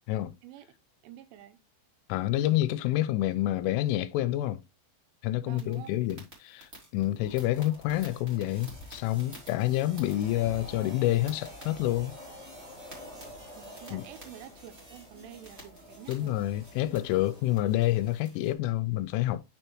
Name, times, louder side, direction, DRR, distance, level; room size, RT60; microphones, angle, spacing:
voice 1, 1.0-1.6 5.4-5.9 13.6-16.4, right 11 dB, 80° right, 3.1 m, -48 dB
voice 2, 2.1-4.6 5.2-12.2 13.9-14.0 16.1-19.4, left 15 dB, 85° left, 3.1 m, -28 dB
sound 1, 5.5-18.5, right 1 dB, 25° right, 2.0 m, -52 dB
sound 2, 7.2-18.1, left 1 dB, 45° left, 0.8 m, -49 dB
9.6 x 4.5 x 3.0 m
omnidirectional pair, 5.7 m